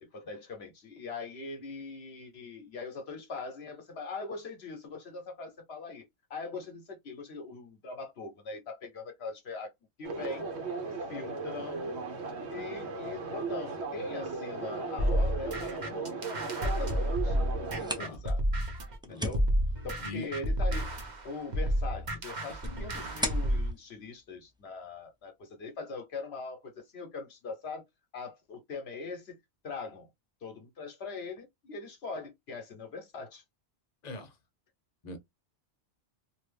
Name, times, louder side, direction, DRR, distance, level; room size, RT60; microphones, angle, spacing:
voice 1, 0.0-9.7 10.0-10.5 11.1-12.0 12.5-17.4 17.8-18.4 19.1-19.4 19.8-27.8 28.1-29.4 29.6-30.1 30.4-33.4, left 4 dB, 65° left, 1.0 m, -41 dB
sound 1, 10.0-18.0, right 4 dB, 70° right, 1.1 m, -37 dB
sound 2, 15.0-19.0 19.3-23.7, equal, 45° right, 0.9 m, -30 dB
sound 3, 17.6-25.1, equal, 5° right, 0.4 m, -42 dB
voice 2, 34.0-34.4 35.0-35.2, left 2 dB, 40° left, 0.9 m, -41 dB
2.7 x 2.6 x 3.3 m
omnidirectional pair, 1.2 m